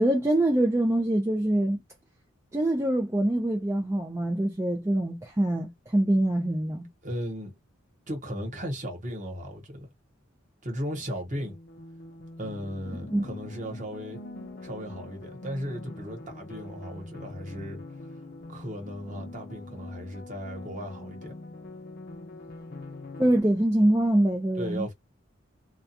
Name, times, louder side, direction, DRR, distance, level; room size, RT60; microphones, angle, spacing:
voice 1, 0.0-1.8 2.5-6.9 13.1-13.2 23.2-24.9, right 1 dB, 15° right, 0.4 m, -24 dB
voice 2, 7.0-7.5 8.1-9.9 10.6-11.6 12.4-14.2 14.6-17.8 18.5-21.3 24.6-24.9, equal, 35° right, 1.0 m, -36 dB
sound 1, 11.3-23.4, left 2 dB, 50° left, 0.6 m, -43 dB
2.3 x 2.3 x 2.7 m
head